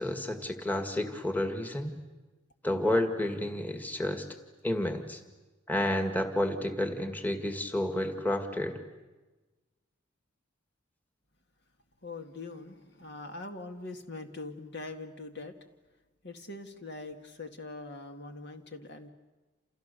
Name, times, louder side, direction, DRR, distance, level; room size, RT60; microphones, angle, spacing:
voice 1, 0.0-2.0 2.6-4.3 4.6-5.2 5.7-8.8, left 1 dB, 10° left, 6 dB, 2.0 m, -30 dB
voice 2, 12.0-15.6 16.2-19.1, left 2 dB, 60° left, 6 dB, 2.2 m, -42 dB
29.0 x 29.0 x 6.9 m, 1.2 s
head